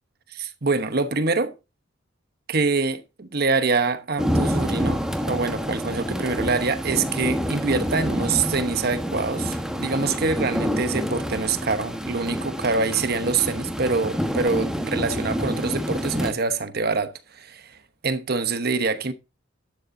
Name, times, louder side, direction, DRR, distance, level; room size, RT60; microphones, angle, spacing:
voice 1, 0.3-1.5 2.5-5.0 5.3-17.8 18.0-19.1, right 4 dB, 50° right, 1.1 m, -25 dB
sound 1, 4.2-16.3, equal, 5° right, 1.3 m, -27 dB
11.5 x 9.9 x 2.7 m
head